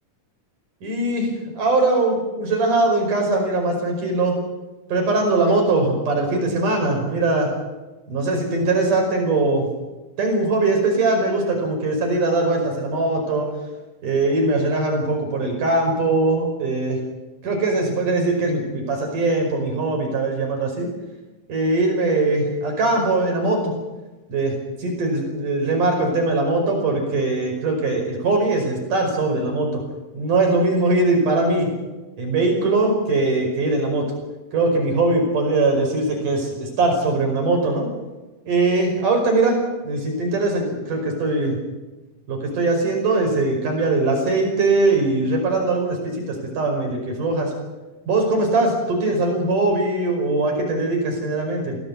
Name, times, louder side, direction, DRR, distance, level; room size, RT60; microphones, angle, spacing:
voice 1, 0.8-4.4 4.9-7.5 8.1-9.7 10.2-13.5 14.0-17.0 17.4-20.9 21.5-23.7 24.3-29.8 30.1-31.7 32.2-34.1 34.5-37.9 38.5-39.6 39.8-41.6 42.3-47.5 48.1-51.8, right 2 dB, 60° right, 2 dB, 6.7 m, -21 dB
23.5 x 17.0 x 8.3 m, 1.1 s
omnidirectional pair, 4.1 m